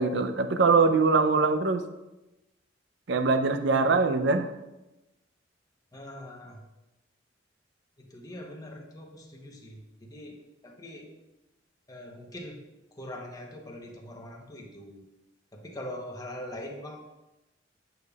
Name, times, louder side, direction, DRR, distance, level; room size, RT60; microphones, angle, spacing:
voice 1, 0.0-1.8 3.1-4.5, right 4 dB, 65° right, 8 dB, 0.5 m, -23 dB
voice 2, 5.9-6.6 8.0-11.1 11.9-12.7 12.9-15.0 15.5-17.0, left 1 dB, 20° left, 0 dB, 0.9 m, -42 dB
8.2 x 6.8 x 2.4 m, 0.98 s
head